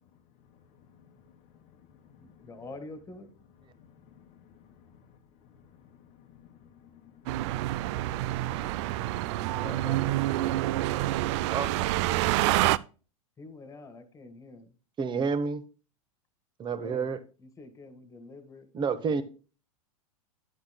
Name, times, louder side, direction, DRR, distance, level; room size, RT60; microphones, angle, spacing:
voice 1, 0.1-2.7 3.6-12.7, left 10 dB, 40° left, 1.2 m, -56 dB
voice 2, 2.2-3.3 9.5-10.6 13.4-14.7 16.8-17.1 17.4-19.2, left 3 dB, 15° left, 1.9 m, -46 dB
sound 1, 7.3-12.8, right 16 dB, 55° right, 0.5 m, -27 dB
voice 3, 15.0-15.6 16.6-17.2 18.7-19.2, right 5 dB, 25° right, 1.2 m, -29 dB
10.5 x 9.9 x 2.2 m
hypercardioid pair, 105°, 18 cm